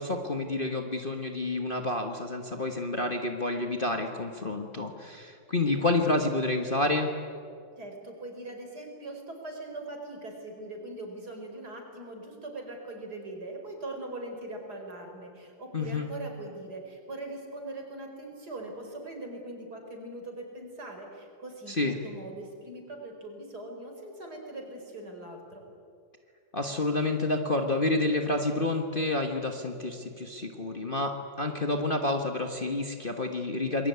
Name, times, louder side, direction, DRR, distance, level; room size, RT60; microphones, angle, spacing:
voice 1, 0.0-7.1 15.7-16.1 21.7-22.0 26.5-33.9, left 2 dB, 30° left, 4 dB, 1.5 m, -29 dB
voice 2, 7.8-25.6, right 2 dB, 55° right, 2 dB, 5.2 m, -41 dB
27.0 x 21.5 x 9.6 m, 2.4 s
omnidirectional pair, 2.1 m